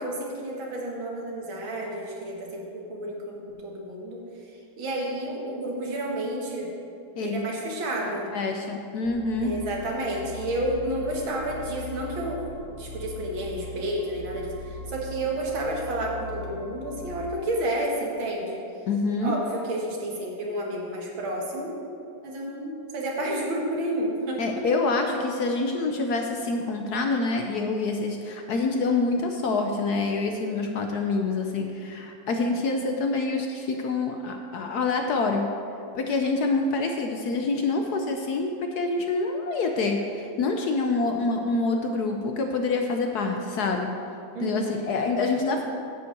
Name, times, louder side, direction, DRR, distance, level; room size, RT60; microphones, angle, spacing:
voice 1, 0.0-4.5 4.8-6.7 7.2-8.3 9.4-12.4 12.7-18.6 19.2-21.7 22.2-24.7 44.3-44.7, right 1 dB, 75° right, -1 dB, 2.4 m, -30 dB
voice 2, 8.1-9.5 18.9-19.3 24.4-35.5 35.9-43.9 44.4-45.6, left 3 dB, 65° left, 3 dB, 1.1 m, -26 dB
sound 1, 9.0-17.2, left 3 dB, 35° left, 1.6 m, -40 dB
10.0 x 5.6 x 7.8 m, 2.6 s
omnidirectional pair, 2.2 m